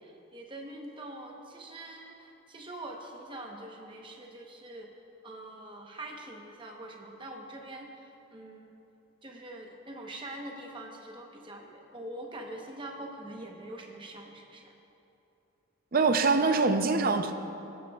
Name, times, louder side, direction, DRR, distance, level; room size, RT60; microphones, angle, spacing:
voice 1, 0.0-4.9 5.2-8.7 9.2-14.7, right 1 dB, 25° right, 1 dB, 0.9 m, -44 dB
voice 2, 15.9-17.3, right 4 dB, 45° right, 8 dB, 0.5 m, -24 dB
15.5 x 12.5 x 2.4 m, 2.8 s
head